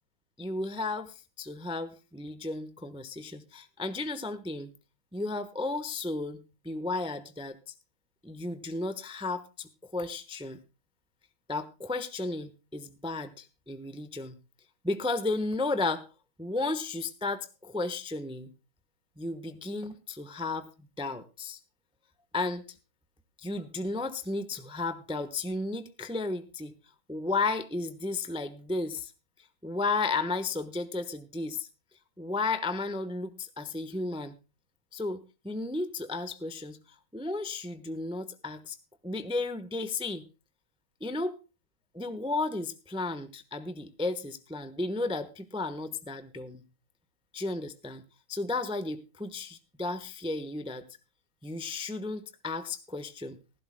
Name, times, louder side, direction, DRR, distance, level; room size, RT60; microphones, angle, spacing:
voice 1, 0.4-4.7 5.1-7.6 8.2-10.6 11.5-14.4 14.8-16.0 16.4-18.5 19.2-21.6 22.3-22.6 23.4-26.7 27.1-29.1 29.6-31.7 32.2-34.3 34.9-35.2 35.4-36.8 37.1-38.8 39.0-40.3 41.0-41.3 41.9-46.6 47.3-48.0 48.3-50.8 51.4-53.4, left 3 dB, 10° right, 10 dB, 0.3 m, -33 dB
17.5 x 15.0 x 2.2 m, 0.31 s
omnidirectional pair, 2.3 m